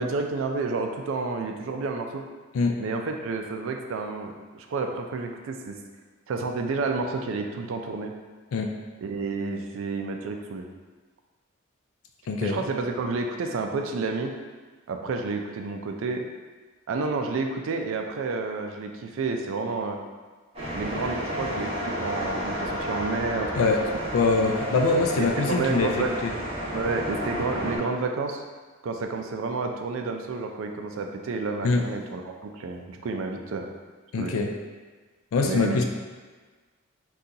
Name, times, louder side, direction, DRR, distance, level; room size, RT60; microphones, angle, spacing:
voice 1, 0.0-2.2 2.8-5.8 6.3-8.1 9.0-10.6 12.4-14.3 14.9-16.2 16.9-20.0 20.7-23.7 25.2-26.1 26.7-28.4 28.8-33.7 34.2-34.4 35.4-35.8, right 4 dB, 65° right, 4 dB, 0.3 m, -30 dB
voice 2, 12.3-12.6 23.6-23.8 24.1-25.9 26.2-26.3 31.6-31.8 34.1-34.5 35.3-35.8, left 4 dB, 75° left, 3 dB, 0.3 m, -23 dB
sound 1, 20.5-27.8, equal, 30° right, 0.7 m, -31 dB
2.7 x 2.3 x 3.8 m, 1.4 s
head